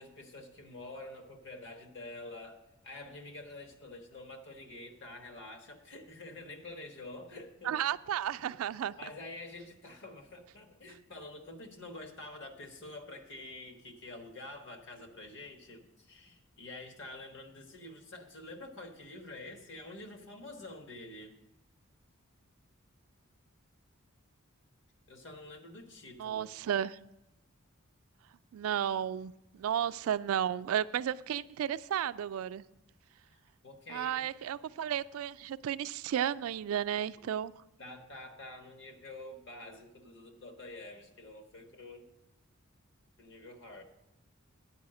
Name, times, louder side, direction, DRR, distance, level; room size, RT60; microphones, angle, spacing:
voice 1, 0.0-7.9 8.4-8.5 9.0-21.4 25.1-26.5 33.3-34.3 37.8-42.1 43.2-43.8, left 2 dB, 60° left, 4 dB, 1.3 m, -47 dB
voice 2, 7.6-8.9 26.2-27.0 28.5-32.6 33.9-37.5, right 9 dB, 75° right, 15 dB, 0.3 m, -33 dB
9.4 x 4.8 x 7.5 m, 0.91 s
head